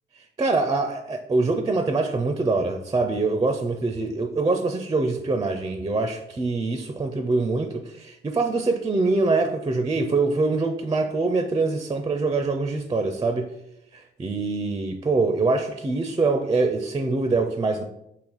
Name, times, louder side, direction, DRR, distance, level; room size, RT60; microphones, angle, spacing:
voice 1, 0.4-13.5 14.2-17.8, right 3 dB, 20° right, 6 dB, 0.4 m, -24 dB
4.6 x 2.9 x 3.9 m, 0.81 s
cardioid pair, 90°, 20 cm